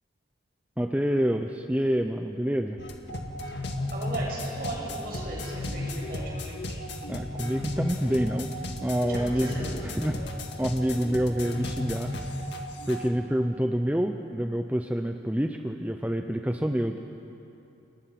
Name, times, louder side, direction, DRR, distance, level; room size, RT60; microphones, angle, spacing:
voice 1, 0.8-2.8 7.1-8.5 8.8-10.2 10.6-12.3 12.9-17.0, equal, 10° right, 5 dB, 0.6 m, -27 dB
sound 1, 2.8-13.1, left 1 dB, 65° left, 1.9 m, -34 dB
voice 2, 3.9-6.6 9.1-9.7, right 1 dB, 50° right, -3 dB, 7.2 m, -36 dB
29.0 x 19.5 x 5.9 m, 2.8 s
head